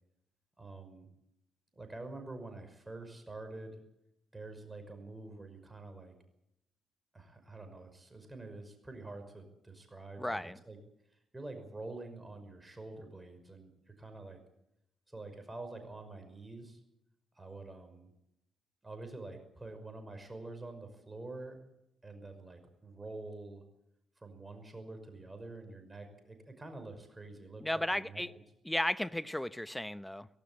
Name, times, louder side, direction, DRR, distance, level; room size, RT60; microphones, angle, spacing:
voice 1, 0.6-1.1 1.7-3.8 4.3-6.1 7.1-10.8 11.1-14.4 15.1-16.8 17.3-18.1 18.8-21.6 22.0-23.6 24.2-28.2, right 2 dB, 20° right, 7 dB, 5.6 m, -47 dB
voice 2, 10.2-10.6 27.6-28.3 28.7-30.3, left 1 dB, 5° left, 15 dB, 1.0 m, -34 dB
18.5 x 18.0 x 8.6 m, 0.81 s
figure-of-eight pair, 40°, 0 cm